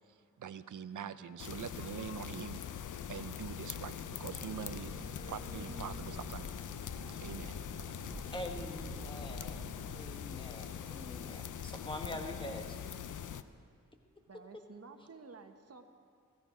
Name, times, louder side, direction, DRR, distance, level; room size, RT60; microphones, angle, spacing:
voice 1, 0.4-2.6 3.1-5.0 5.3-6.5 7.2-7.6, right 8 dB, 80° right, 13 dB, 0.6 m, -44 dB
sound 1, 1.4-13.4, left 8 dB, 85° left, 0.6 m, -43 dB
sound 2, 4.2-10.2, right 1 dB, 15° right, 3.0 m, -48 dB
voice 2, 8.3-12.8, left 1 dB, 15° left, 4 dB, 1.3 m, -44 dB
voice 3, 14.2-15.9, right 4 dB, 55° right, 6 dB, 1.2 m, -52 dB
17.0 x 15.5 x 5.1 m, 2.2 s
wide cardioid pair, 70°, 30 cm